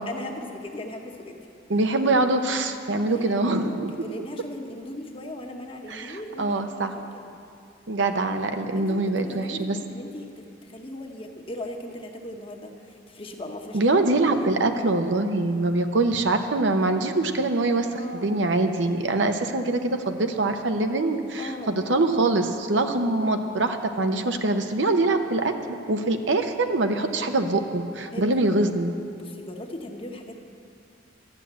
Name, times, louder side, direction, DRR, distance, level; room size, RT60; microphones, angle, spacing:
voice 1, 0.0-1.4 3.1-7.3 8.7-14.0 14.4-14.6 18.0-18.4 21.4-21.7 28.1-28.6 29.1-30.4, left 1 dB, 30° left, 3 dB, 1.0 m, -38 dB
voice 2, 1.7-4.0 5.9-6.9 7.9-9.8 13.7-25.5 25.9-28.9, right 2 dB, 70° right, 6 dB, 0.8 m, -24 dB
12.5 x 7.1 x 8.6 m, 2.5 s
head